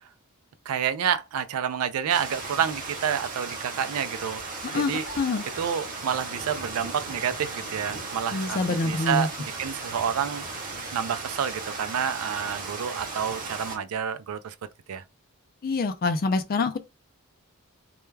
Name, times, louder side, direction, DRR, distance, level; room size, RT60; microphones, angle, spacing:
voice 1, 0.7-4.4 4.7-5.0 5.6-9.3 9.6-10.6 10.9-14.5 14.9-15.0, right 8 dB, 70° right, 0.4 m, -29 dB
sound 1, 2.1-13.8, right 3 dB, 40° right, 0.7 m, -36 dB
voice 2, 4.6-5.5 8.3-9.3 15.6-16.8, left 3 dB, 40° left, 0.4 m, -26 dB
2.3 x 2.1 x 3.2 m
head